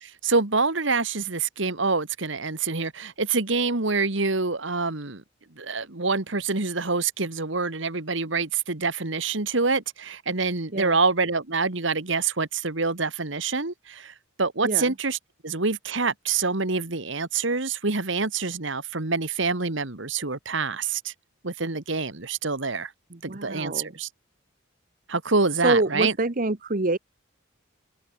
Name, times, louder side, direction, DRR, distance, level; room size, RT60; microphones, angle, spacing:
voice 1, 0.0-5.2 5.6-15.2 15.4-21.1 21.4-22.9 23.2-24.1 25.1-26.1, right 4 dB, 65° right, 1.8 m, -26 dB
voice 2, 14.6-14.9 23.1-23.9 25.6-27.0, right 2 dB, 45° right, 1.2 m, -26 dB
head